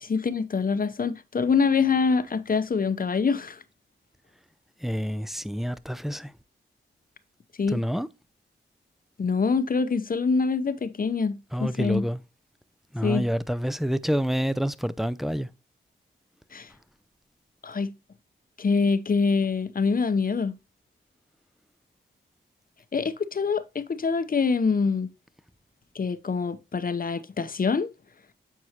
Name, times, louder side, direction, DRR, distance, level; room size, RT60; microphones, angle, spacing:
voice 1, 0.0-3.6 7.6-7.8 9.2-12.0 13.0-13.3 16.5-16.7 17.6-17.9 18.6-20.5 22.9-25.1 25.9-27.9, left 5 dB, 45° left, 0.7 m, -25 dB
voice 2, 4.8-6.3 7.7-8.1 11.5-12.2 12.9-15.5, equal, ahead, 0.4 m, -28 dB
8.0 x 4.6 x 2.8 m
cardioid pair, 55°, 21 cm